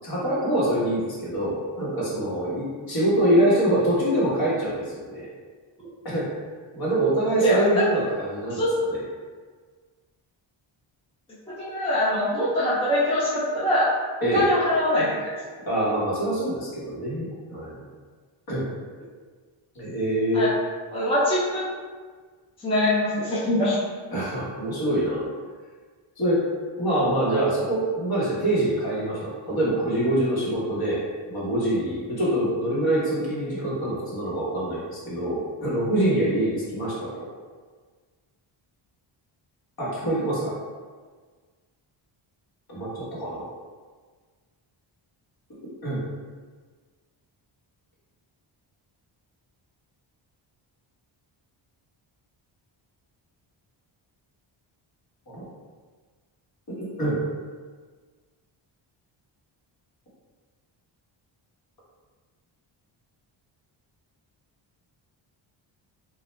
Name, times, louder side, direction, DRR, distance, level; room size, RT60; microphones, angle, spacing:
voice 1, 0.0-5.3 6.0-6.3 6.7-8.6 8.9-9.0 14.2-14.5 15.7-17.8 18.5-18.6 19.7-20.5 24.1-25.3 26.2-26.4 26.8-31.0 31.3-37.1 39.8-40.5 42.7-43.4 45.8-46.0 55.3-55.4 56.8-57.2, right 1 dB, 45° left, -7 dB, 1.2 m, -25 dB
voice 2, 7.4-7.9 8.5-8.7 11.5-13.9 14.2-15.3 20.3-20.5 20.9-21.6 22.6-23.8, left 1 dB, 10° left, -9 dB, 0.6 m, -23 dB
2.3 x 2.1 x 3.1 m, 1.5 s
cardioid pair, 85°, 50 cm